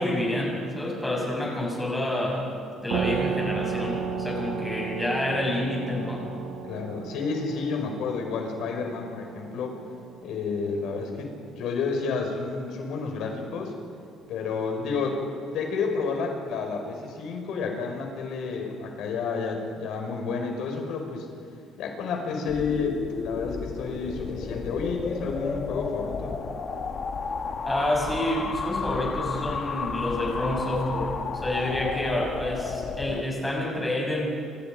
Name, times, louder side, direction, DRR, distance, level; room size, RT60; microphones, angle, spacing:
voice 1, 0.0-2.6 2.8-6.3 27.6-34.3, left 1 dB, 10° left, -3 dB, 7.7 m, -28 dB
sound 1, 2.9-12.1, right 6 dB, 70° right, 1.6 m, -34 dB
voice 2, 6.6-9.7 10.2-13.7 14.3-15.2 15.5-21.3 21.8-26.4, left 4 dB, 70° left, 3 dB, 5.4 m, -30 dB
sound 2, 22.4-33.2, left 5 dB, 35° left, 1.7 m, -32 dB
28.5 x 26.5 x 5.2 m, 2.3 s
cardioid pair, 145°, 0 cm